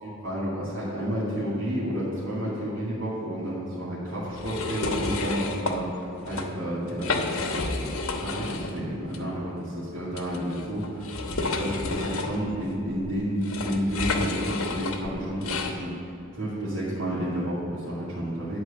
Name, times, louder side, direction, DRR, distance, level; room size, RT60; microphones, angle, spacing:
voice 1, 0.0-7.3 7.8-7.9 8.2-15.9 16.3-18.6, equal, 75° right, -10 dB, 2.4 m, -31 dB
sound 1, 4.4-5.8 6.2-6.5 6.9-8.8 9.1-9.2 10.1-15.8, left 3 dB, 85° left, 1.0 m, -30 dB
11.0 x 4.7 x 7.6 m, 2.8 s
head